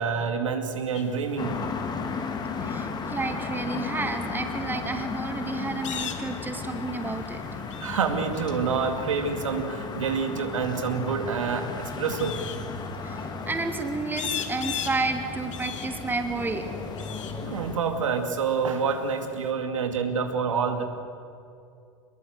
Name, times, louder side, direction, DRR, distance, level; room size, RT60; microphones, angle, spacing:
voice 1, 0.0-1.6 2.6-2.8 7.8-12.4 17.4-20.8, right 5 dB, 75° right, 5 dB, 2.4 m, -27 dB
sound 1, 0.9-19.5, left 9 dB, 70° left, 2.0 m, -42 dB
sound 2, 1.4-17.8, left 4 dB, 25° left, 2.3 m, -35 dB
voice 2, 2.6-7.4 13.0-16.6 17.2-17.4, right 3 dB, 10° right, 6 dB, 2.3 m, -31 dB
24.0 x 21.5 x 7.9 m, 2.5 s
figure-of-eight pair, 90°, 16 cm